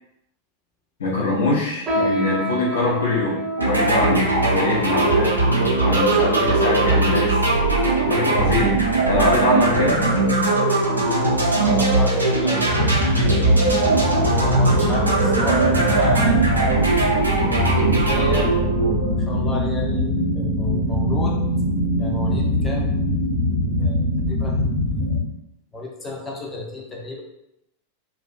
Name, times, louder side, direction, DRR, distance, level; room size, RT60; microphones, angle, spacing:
voice 1, 1.0-5.4 5.8-7.4 8.0-8.7 9.1-10.0, left 2 dB, 60° left, -5 dB, 0.5 m, -23 dB
sound 1, 1.9-7.5 8.2-8.3 9.1-9.4 9.8-9.9 10.6-10.7, right 1 dB, 20° right, 0.7 m, -30 dB
sound 2, 3.6-19.5, right 2 dB, 80° right, 0.5 m, -19 dB
voice 2, 11.6-13.9 14.4-16.6 18.1-21.4 22.0-22.9 23.8-25.2 25.7-27.2, left 1 dB, 15° left, -1 dB, 0.4 m, -32 dB
sound 3, 12.7-25.2, left 1 dB, 85° left, 0.9 m, -23 dB
2.4 x 2.0 x 2.5 m, 0.84 s
figure-of-eight pair, 90°, 0 cm